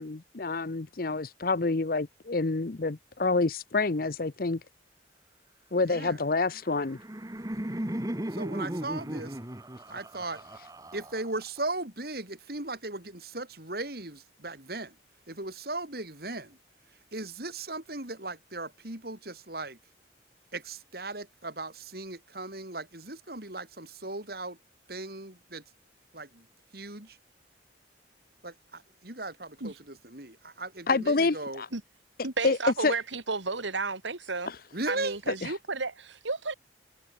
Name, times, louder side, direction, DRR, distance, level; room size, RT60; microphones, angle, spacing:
voice 1, 0.0-4.6 5.7-7.0 30.9-31.7 32.4-32.6 32.8-32.9 34.5-34.6, left 3 dB, 50° left, 0.7 m, -27 dB
voice 2, 5.8-6.2 8.3-9.4 9.9-10.4 10.9-15.0 15.3-16.6 16.9-19.8 20.5-24.6 24.9-25.6 26.1-26.5 26.7-27.2 28.4-31.6 34.7-35.2, right 2 dB, 55° right, 4.2 m, -37 dB
Laughter, 6.6-11.6, right 1 dB, 20° right, 1.3 m, -36 dB
voice 3, 32.2-34.5 34.9-36.5, right 3 dB, 85° right, 2.7 m, -32 dB
head